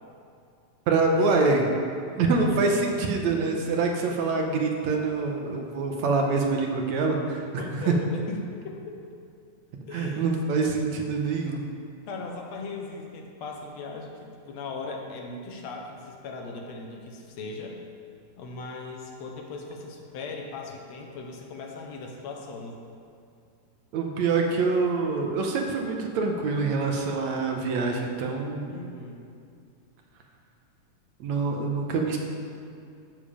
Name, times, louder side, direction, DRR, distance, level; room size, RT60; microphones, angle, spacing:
voice 1, 0.9-1.7 2.2-7.5 7.7-7.9 9.9-11.6 23.9-28.7 31.2-32.2, right 4 dB, 70° right, 2 dB, 2.0 m, -25 dB
voice 2, 7.6-9.0 9.9-10.2 11.3-11.4 12.1-17.8 18.4-22.8 28.7-29.2, left 3 dB, 65° left, 1 dB, 2.0 m, -38 dB
12.5 x 7.4 x 5.0 m, 2.4 s
omnidirectional pair, 3.8 m